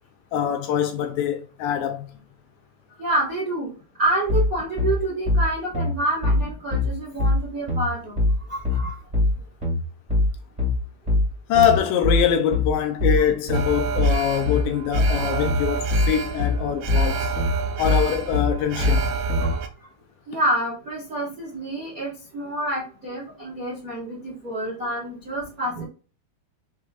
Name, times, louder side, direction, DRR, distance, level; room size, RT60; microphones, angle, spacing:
voice 1, 0.3-2.1 11.5-17.3 17.8-19.0, left 8 dB, 80° left, 2.1 m, -23 dB
voice 2, 3.0-3.7 4.0-9.0 19.4-19.7 20.3-25.8, right 1 dB, 70° right, 0.8 m, -28 dB
sound 1, 4.3-19.5, left 2 dB, 20° right, 1.1 m, -22 dB
Alarm, 13.5-19.7, right 4 dB, 90° right, 2.6 m, -29 dB
6.2 x 3.4 x 2.4 m
omnidirectional pair, 4.4 m